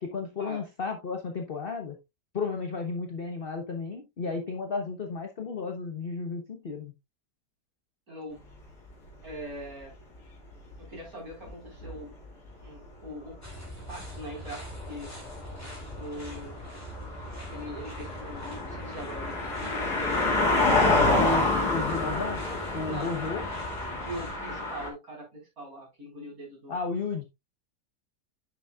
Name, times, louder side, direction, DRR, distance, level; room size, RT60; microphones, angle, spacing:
voice 1, 0.0-2.0 2.3-6.9 21.2-22.4 22.7-23.4 26.7-27.2, left 4 dB, 40° left, 1.0 m, -33 dB
voice 2, 8.1-8.4 9.2-9.9 10.8-12.1 12.6-13.4 13.9-15.1 16.0-16.6 17.5-20.0 20.7-21.1 21.6-21.7 22.8-23.2 24.0-26.8, equal, 55° right, 5.0 m, -42 dB
sound 1, 10.5-10.7 11.5-11.6 11.8-12.0 14.4-14.5 14.7-24.9, left 2 dB, 65° left, 2.8 m, -28 dB
sound 2, 13.4-24.4, equal, 10° left, 2.8 m, -43 dB
9.3 x 7.0 x 2.4 m
omnidirectional pair, 1.8 m